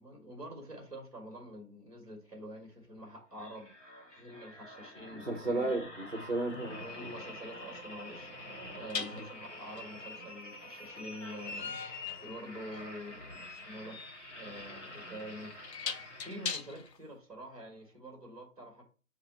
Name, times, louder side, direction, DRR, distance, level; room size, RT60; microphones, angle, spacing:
voice 1, 0.0-3.7 4.1-5.7 6.8-14.0 14.3-15.5 16.0-18.8, equal, 25° right, 1.1 m, -47 dB
sound 1, 3.3-16.9 17.5-17.6, left 1 dB, 50° left, 1.2 m, -48 dB
voice 2, 5.1-7.2 9.0-9.2, right 2 dB, 40° right, 0.6 m, -34 dB
sound 2, 6.5-6.6 8.9-17.0, left 6 dB, 85° left, 0.7 m, -42 dB
6.6 x 2.5 x 2.7 m
figure-of-eight pair, 170°, 48 cm